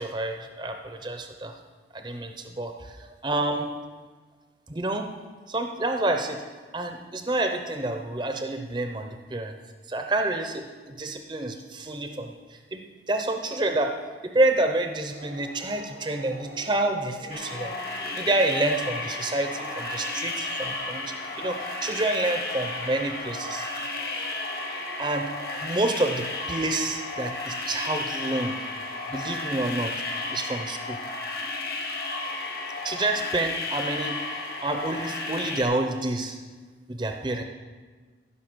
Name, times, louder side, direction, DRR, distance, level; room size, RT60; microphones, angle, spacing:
voice 1, 0.0-1.5 1.9-3.7 4.7-5.1 5.5-6.4 6.7-9.5 9.9-13.9 14.2-17.7 18.2-23.7 25.0-25.3 25.6-28.5 29.1-29.9 30.3-31.0 32.8-34.2 34.6-36.4 36.9-37.4, right 2 dB, 25° right, 5 dB, 0.6 m, -28 dB
sound 1, 15.1-33.2, right 2 dB, 90° right, 1.4 m, -47 dB
sound 2, 17.3-35.6, left 3 dB, 55° left, 1.6 m, -33 dB
15.0 x 6.0 x 6.1 m, 1.4 s
head